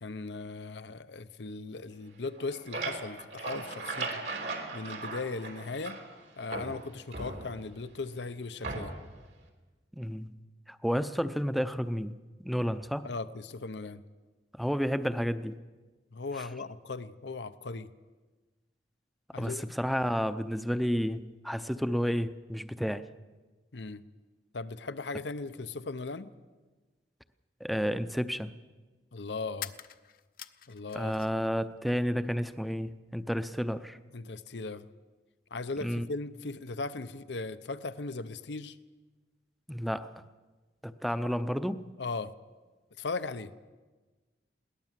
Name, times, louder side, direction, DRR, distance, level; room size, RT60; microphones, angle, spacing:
voice 1, 0.0-4.2 4.7-6.0 6.4-8.9 13.0-14.0 16.1-17.9 19.3-19.7 23.7-24.0 24.5-26.3 29.1-29.7 30.7-31.2 34.1-34.9 35.5-38.8 42.0-42.3 43.0-43.5, left 3 dB, 85° left, 13 dB, 0.8 m, -38 dB
sound 1, 2.2-6.2 6.5-7.8 8.6-9.2, right 3 dB, 80° right, 3.5 m, -38 dB
voice 2, 9.9-10.4 10.7-13.1 14.5-15.6 16.3-16.5 19.3-23.1 27.6-28.5 30.9-34.0 35.8-36.1 39.7-40.2 40.8-41.9, equal, ahead, 11 dB, 0.6 m, -31 dB
sound 2, 27.3-27.4 29.5-31.5 31.8-32.6, left 11 dB, 55° left, 0.7 m, -46 dB
21.5 x 18.0 x 7.5 m, 1.3 s
head